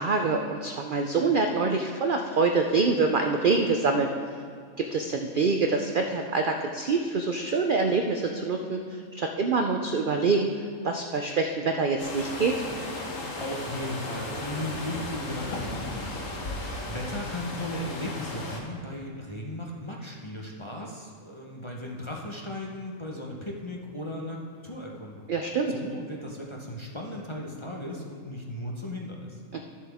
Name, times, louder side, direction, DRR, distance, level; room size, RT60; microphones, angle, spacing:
voice 1, 0.0-4.1 4.8-10.5 10.8-12.6 25.3-25.7 29.5-29.6, right 4 dB, 60° right, 4 dB, 0.5 m, -25 dB
sound 1, 12.0-18.6, left 2 dB, 65° left, 1.5 m, -35 dB
voice 2, 13.4-25.3 25.7-29.4, left 1 dB, 25° left, -1 dB, 0.8 m, -36 dB
13.0 x 7.2 x 3.5 m, 2.2 s
omnidirectional pair, 1.5 m